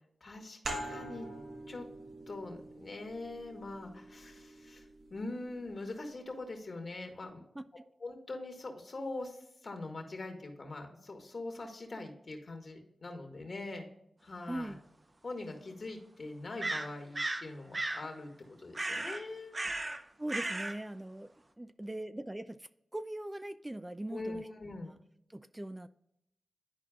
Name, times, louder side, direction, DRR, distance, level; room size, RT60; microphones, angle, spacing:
voice 1, 0.2-0.6 0.8-1.3 1.7-1.9 2.3-7.4 8.0-13.9 14.2-14.7 15.2-19.6 24.1-24.9, left 2 dB, 60° left, 3 dB, 1.8 m, -43 dB
sound 1, 0.6-5.9, right 1 dB, 80° right, 1.2 m, -45 dB
voice 2, 14.5-14.8 20.2-21.3 21.6-24.4 24.8-25.0 25.3-25.9, right 1 dB, 20° right, 12 dB, 0.4 m, -41 dB
sound 2, 14.6-14.7 16.6-17.5 17.7-18.0 18.7-19.2 19.5-20.0 20.3-20.7, right 2 dB, 40° right, 0.8 m, -35 dB
11.5 x 4.6 x 2.4 m, 0.78 s
cardioid pair, 40°, 0 cm